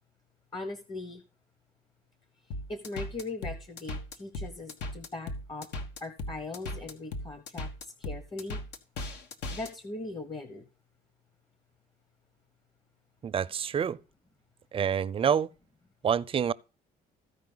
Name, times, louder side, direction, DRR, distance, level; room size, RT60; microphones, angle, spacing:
voice 1, 0.5-1.2 2.7-5.7 6.0-7.7 8.0-8.6 9.5-10.7, left 2 dB, 25° left, 1.0 m, -39 dB
sound 1, 2.5-9.7, left 2 dB, 80° left, 1.5 m, -37 dB
voice 2, 13.2-14.0 14.7-15.5 16.0-16.5, right 8 dB, 35° right, 0.5 m, -27 dB
15.0 x 5.2 x 3.9 m
cardioid pair, 110°, 17 cm